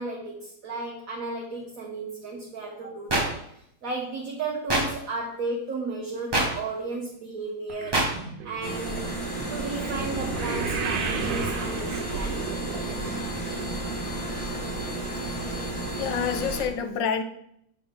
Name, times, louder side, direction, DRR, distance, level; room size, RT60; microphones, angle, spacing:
voice 1, 0.0-9.0 9.5-12.5 14.9-15.1, right 3 dB, 50° right, -1 dB, 1.2 m, -34 dB
sound 1, 3.1-3.2 4.7-4.8 6.3-6.5 7.9-8.1, right 2 dB, 15° right, 1.0 m, -22 dB
sound 2, 7.7-14.1 14.4-14.8 15.4-15.5 15.8-15.9, right 5 dB, 70° right, 1.5 m, -34 dB
sound 3, 8.6-16.6, right 2 dB, 25° left, 0.8 m, -32 dB
voice 2, 16.0-17.2, left 7 dB, 70° left, 9 dB, 1.3 m, -27 dB
6.8 x 6.2 x 3.6 m, 0.73 s
omnidirectional pair, 2.2 m